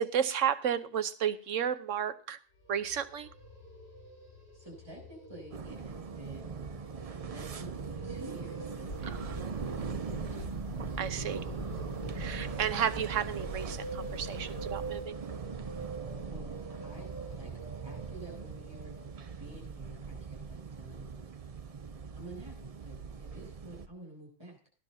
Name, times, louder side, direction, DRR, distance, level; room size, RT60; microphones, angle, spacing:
voice 1, 0.0-2.4 2.7-3.3 9.0-9.5 11.0-11.4 12.2-15.2, right 8 dB, 80° right, 12 dB, 1.2 m, -32 dB
sound 1, 2.6-19.5, right 3 dB, 50° left, 4.0 m, -47 dB
voice 2, 4.5-6.6 7.3-9.7 10.3-10.5 16.2-17.1 17.3-17.5 17.8-19.0 19.4-21.3 22.1-24.6, right 1 dB, 20° right, -2 dB, 8.1 m, -49 dB
sound 2, 5.5-23.9, right 5 dB, 40° right, 0.6 m, -41 dB
sound 3, 8.9-15.0, equal, 85° left, 3.0 m, -42 dB
19.0 x 11.5 x 2.7 m, 0.40 s
omnidirectional pair, 1.3 m